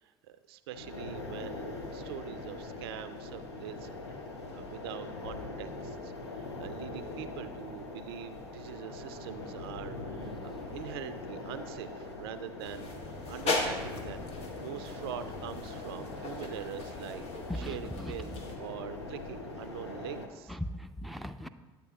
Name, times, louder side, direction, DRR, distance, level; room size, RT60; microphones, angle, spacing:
voice 1, 0.0-4.2 4.5-12.9 13.3-20.5, right 10 dB, 70° right, 12 dB, 0.4 m, -44 dB
sound 1, 0.7-20.3, left 2 dB, 85° left, 0.7 m, -42 dB
sound 2, 12.6-18.6, left 3 dB, 50° left, 1.2 m, -38 dB
voice 2, 17.5-18.4 20.5-21.5, equal, ahead, 7 dB, 0.5 m, -38 dB
10.0 x 8.1 x 2.3 m, 1.3 s
figure-of-eight pair, 55°, 13 cm